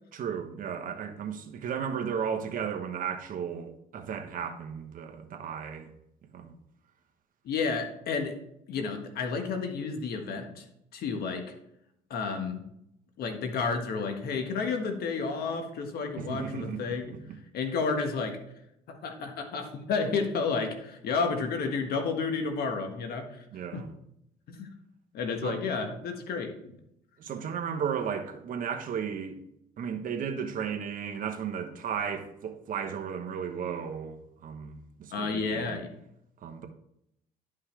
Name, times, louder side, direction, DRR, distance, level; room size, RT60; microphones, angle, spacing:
voice 1, 0.1-5.9 6.3-6.5 16.2-17.3 23.5-23.9 25.4-25.6 27.2-29.4 29.8-35.8 36.4-36.7, right 7 dB, 55° right, 1.1 m, -34 dB
voice 2, 7.4-8.4 8.7-10.6 10.9-11.5 12.1-12.7 13.2-17.1 17.5-18.4 18.9-23.2 23.7-23.9 24.5-24.7 25.1-26.5 35.1-35.9, left 4 dB, 65° left, 1.6 m, -31 dB
11.0 x 5.6 x 3.3 m
cardioid pair, 110°, 17 cm